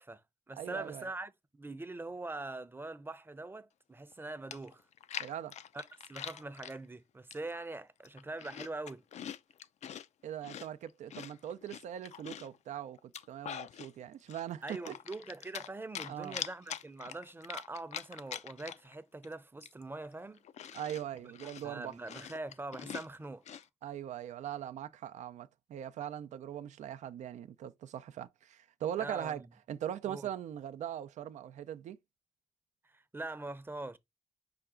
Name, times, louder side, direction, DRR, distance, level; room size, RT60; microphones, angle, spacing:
voice 1, 0.0-4.8 5.7-9.0 14.6-20.4 21.1-21.3 21.6-23.4 29.0-29.4 30.1-30.3 32.9-34.0, right 2 dB, 20° right, 0.6 m, -43 dB
voice 2, 0.6-1.1 5.2-5.5 10.2-14.9 16.1-16.4 20.7-21.9 23.8-29.4 29.7-32.0, right 10 dB, 85° right, 0.5 m, -41 dB
Chewing mastication, 4.1-4.2 4.5-6.8 7.3-7.7 8.0-10.1 10.4-12.6 13.0-13.9 14.3-15.7 15.9-18.9 19.2-19.3 19.6-23.7, left 9 dB, 75° left, 0.4 m, -44 dB
5.8 x 2.3 x 3.7 m
cardioid pair, 70°, 12 cm